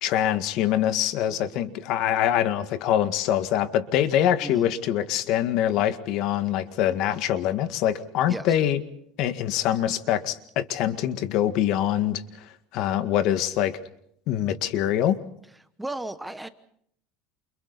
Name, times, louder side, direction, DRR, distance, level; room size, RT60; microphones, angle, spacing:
voice 1, 0.0-8.8 9.2-12.2 12.7-13.8 14.3-15.2, left 11 dB, 55° left, 1.9 m, -24 dB
voice 2, 4.4-4.7 8.3-8.6 15.8-16.5, right 2 dB, 5° right, 1.1 m, -34 dB
29.5 x 29.0 x 4.2 m
cardioid pair, 150°, 0 cm